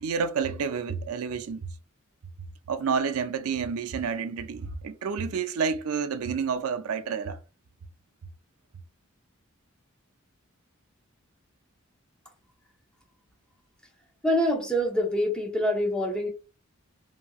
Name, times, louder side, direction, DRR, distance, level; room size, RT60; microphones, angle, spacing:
voice 1, 0.0-1.6 2.7-7.4, right 6 dB, 85° right, 0.4 m, -29 dB
voice 2, 14.2-16.3, equal, 5° left, 0.8 m, -25 dB
2.9 x 2.7 x 2.3 m
head